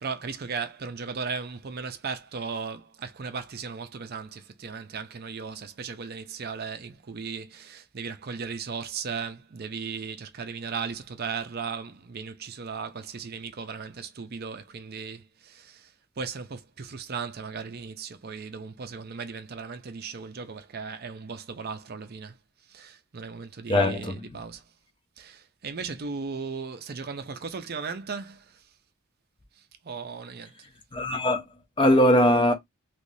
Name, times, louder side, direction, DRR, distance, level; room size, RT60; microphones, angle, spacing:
voice 1, 0.0-22.4 22.7-24.6 25.2-28.7 29.6-30.5, right 5 dB, 45° right, 0.5 m, -36 dB
voice 2, 23.7-24.2 30.9-31.4 31.8-32.5, left 1 dB, 20° left, 0.6 m, -20 dB
3.4 x 2.9 x 2.6 m
head